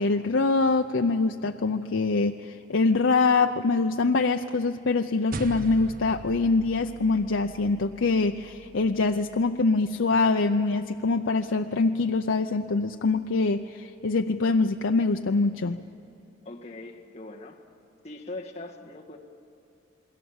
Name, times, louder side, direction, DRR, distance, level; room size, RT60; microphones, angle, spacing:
voice 1, 0.0-15.8, left 3 dB, 75° left, 5 dB, 0.6 m, -24 dB
sound 1, 5.3-10.0, right 3 dB, 45° right, 0.7 m, -42 dB
voice 2, 16.4-17.6 18.0-19.2, left 2 dB, 35° left, -1 dB, 1.6 m, -41 dB
28.5 x 22.0 x 7.2 m, 2.9 s
head